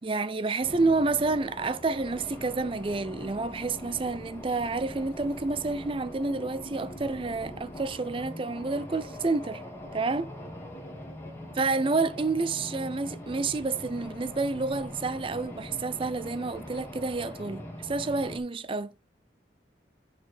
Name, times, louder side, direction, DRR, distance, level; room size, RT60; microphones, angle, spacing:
voice 1, 0.0-9.6 9.9-10.3 11.6-18.9, right 3 dB, 30° right, 0.4 m, -29 dB
sound 1, 0.6-18.4, equal, 15° left, 1.7 m, -42 dB
8.5 x 4.2 x 4.9 m
head